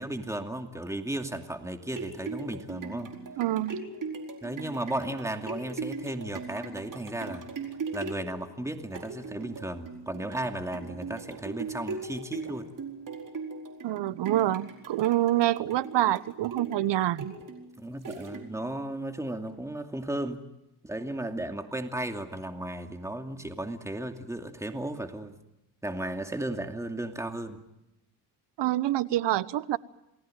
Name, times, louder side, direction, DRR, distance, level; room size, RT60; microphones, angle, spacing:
voice 1, 0.0-3.1 4.4-7.5 7.9-12.7 17.8-20.4 20.8-25.3 25.8-27.6, right 1 dB, 5° right, 5 dB, 2.5 m, -35 dB
sound 1, 1.6-18.8 19.3-19.4, right 4 dB, 45° right, 4.6 m, -40 dB
voice 2, 3.4-3.8 13.8-17.4 28.6-29.8, right 14 dB, 75° right, 17 dB, 1.1 m, -26 dB
28.5 x 19.5 x 9.1 m, 0.89 s
cardioid pair, 95°, 42 cm